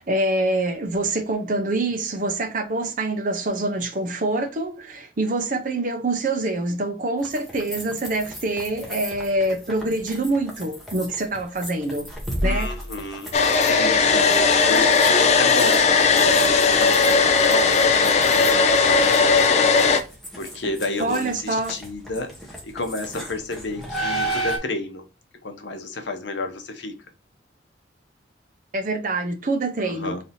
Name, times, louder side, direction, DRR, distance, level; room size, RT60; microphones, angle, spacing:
voice 1, 0.0-12.1 12.4-12.7 21.0-21.8 28.7-30.2, right 2 dB, 45° right, 0.6 m, -25 dB
sound 1, 7.2-24.6, right 1 dB, ahead, 0.9 m, -34 dB
voice 2, 12.4-19.2 20.3-25.0 25.4-27.0 29.8-30.2, left 2 dB, 70° left, 0.8 m, -31 dB
Domestic sounds home sounds, 13.3-20.0, left 4 dB, 35° left, 0.4 m, -17 dB
3.3 x 2.7 x 4.1 m
head